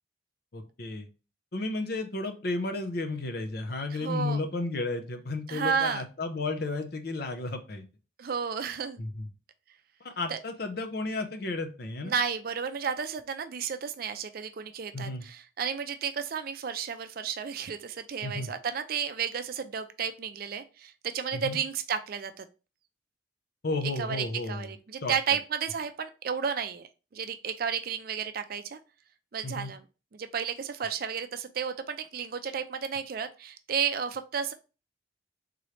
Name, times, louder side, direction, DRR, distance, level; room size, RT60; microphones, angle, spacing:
voice 1, 0.5-1.1 1.5-7.8 9.0-9.3 10.0-12.1 14.9-15.2 18.2-18.5 21.3-21.6 23.6-24.7 25.0-25.1 29.4-29.7, left 2 dB, 55° left, 6 dB, 0.7 m, -33 dB
voice 2, 3.9-4.4 5.5-6.0 8.2-9.0 10.3-10.4 12.0-22.4 24.0-28.8 29.3-29.8 30.1-34.5, right 7 dB, 50° right, 9 dB, 0.4 m, -32 dB
3.7 x 3.0 x 3.2 m, 0.32 s
head